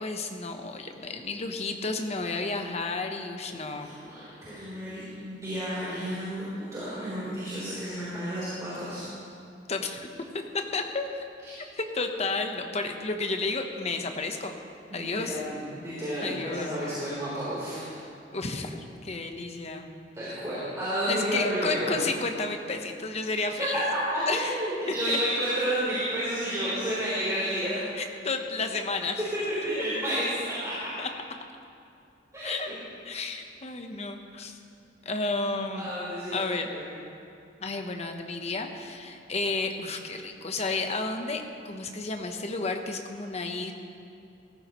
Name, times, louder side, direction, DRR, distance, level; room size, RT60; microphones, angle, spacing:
voice 1, 0.0-3.9 9.7-10.1 10.3-11.2 11.6-14.5 14.9-15.4 16.2-16.9 18.3-19.9 21.1-23.8 24.3-24.5 25.1-25.2 28.0-29.2 29.8-29.9 31.0-31.1 32.4-32.7 33.0-34.6 35.0-35.9 36.3-36.7 37.6-43.7, left 3 dB, 40° left, 5 dB, 1.0 m, -32 dB
voice 2, 3.5-9.1 11.4-11.5 14.9-17.9 20.1-22.0 23.6-27.9 29.5-30.7 32.3-32.5 33.2-33.3 35.8-36.9, equal, 20° right, -11 dB, 3.8 m, -31 dB
18.0 x 14.5 x 3.1 m, 2.5 s
head